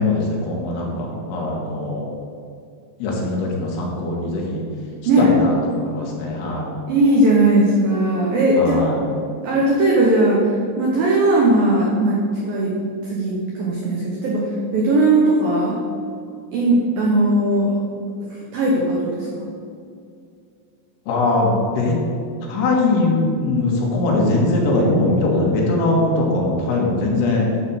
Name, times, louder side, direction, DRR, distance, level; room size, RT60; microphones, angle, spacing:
voice 1, 0.0-2.0 3.0-4.6 5.2-5.5 5.8-6.7 8.6-8.9 21.1-22.0 22.5-27.5, left 2 dB, 80° left, -2 dB, 4.2 m, -21 dB
voice 2, 6.9-8.9 9.4-12.7 13.0-15.8 16.5-17.8 18.5-19.5, right 1 dB, 85° right, -3 dB, 2.0 m, -18 dB
11.5 x 4.2 x 7.3 m, 2.4 s
omnidirectional pair, 5.8 m